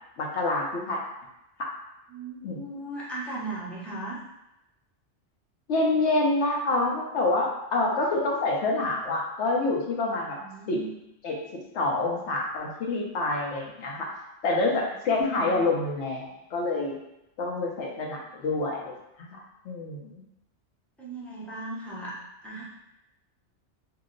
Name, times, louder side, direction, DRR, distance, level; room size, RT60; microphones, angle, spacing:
voice 1, 0.2-1.0 1.6-1.7 2.4-2.6 5.7-10.4 10.7-10.8 11.2-11.4 11.7-14.1 14.4-17.0 17.4-19.4 19.6-20.2, left 2 dB, 70° left, -1 dB, 1.0 m, -27 dB
voice 2, 2.1-4.2 10.2-10.9 14.8-15.6 21.0-22.1 22.4-22.6, right 2 dB, ahead, -9 dB, 0.7 m, -38 dB
2.9 x 2.1 x 3.7 m, 0.89 s
omnidirectional pair, 1.2 m